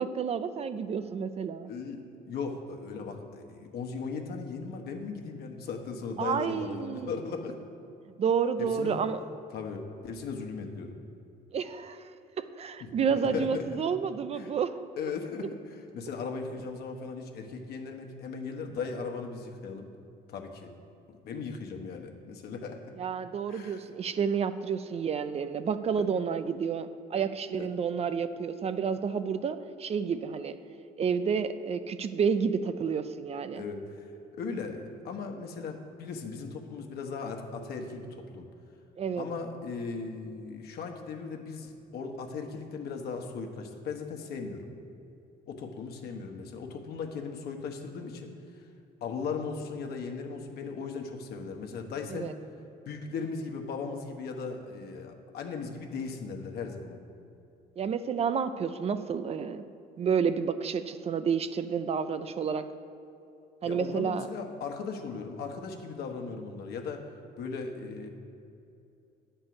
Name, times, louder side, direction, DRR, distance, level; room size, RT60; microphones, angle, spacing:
voice 1, 0.0-1.7 6.2-7.2 8.2-9.2 11.5-12.1 12.4-14.8 23.0-30.6 31.0-33.6 39.0-39.2 52.1-52.3 57.8-59.6 60.0-62.7 63.6-64.3, right 6 dB, 40° right, 11 dB, 0.4 m, -30 dB
voice 2, 1.7-7.6 8.6-9.0 9.5-11.0 12.8-13.8 14.3-14.5 15.0-19.9 20.3-20.7 21.1-22.9 23.5-23.8 25.9-26.0 27.6-27.7 33.5-34.1 34.3-38.5 39.1-44.7 45.5-48.3 49.0-52.3 52.9-57.0 63.6-67.1 67.4-68.1, left 5 dB, 70° left, 3 dB, 1.1 m, -38 dB
10.0 x 4.5 x 7.7 m, 2.7 s
cardioid pair, 110°, 17 cm